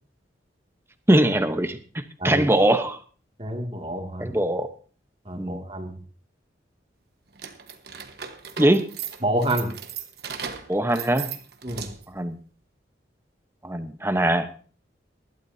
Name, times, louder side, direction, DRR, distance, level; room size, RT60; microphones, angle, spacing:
voice 1, 1.1-3.0 4.2-4.7 5.4-5.6 8.6-8.8 10.7-11.3 12.1-12.4 13.6-14.5, right 1 dB, 15° right, 9 dB, 0.9 m, -22 dB
voice 2, 3.4-4.3 5.3-6.0 9.2-9.7 11.6-11.9, right 1 dB, 30° right, 3 dB, 2.3 m, -28 dB
sound 1, 7.3-12.2, right 8 dB, 55° right, 1.3 m, -37 dB
19.5 x 12.5 x 2.8 m, 0.39 s
head